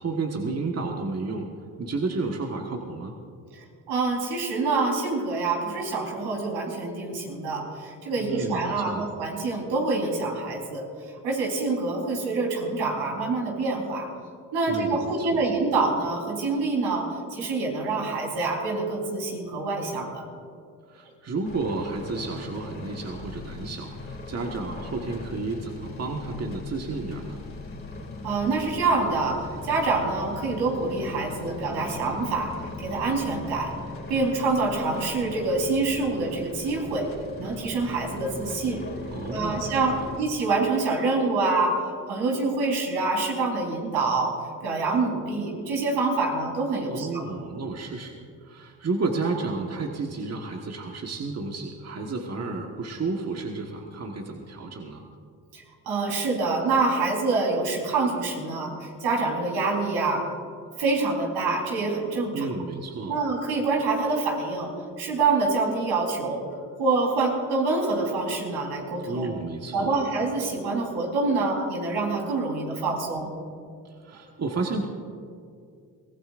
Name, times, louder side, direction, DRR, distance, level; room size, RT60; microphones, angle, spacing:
voice 1, 0.0-1.5 1.8-3.2 8.2-9.0 14.6-15.5 20.9-27.4 39.1-39.8 46.9-48.1 48.4-55.0 62.3-63.1 69.0-70.0 73.8-74.9, right 3 dB, 40° right, 1 dB, 1.5 m, -31 dB
voice 2, 3.9-10.8 11.2-14.1 14.5-20.3 28.2-32.5 32.8-33.7 34.1-37.1 37.4-38.8 39.3-41.7 42.1-44.3 44.6-47.2 55.5-60.2 60.8-62.5 63.1-64.7 65.0-66.4 66.8-69.3 69.7-73.3, right 3 dB, 80° right, -2 dB, 4.2 m, -26 dB
sound 1, 21.4-40.2, left 3 dB, 30° left, 2.5 m, -39 dB
23.0 x 17.0 x 2.6 m, 2.3 s
supercardioid pair, 65°, 40 cm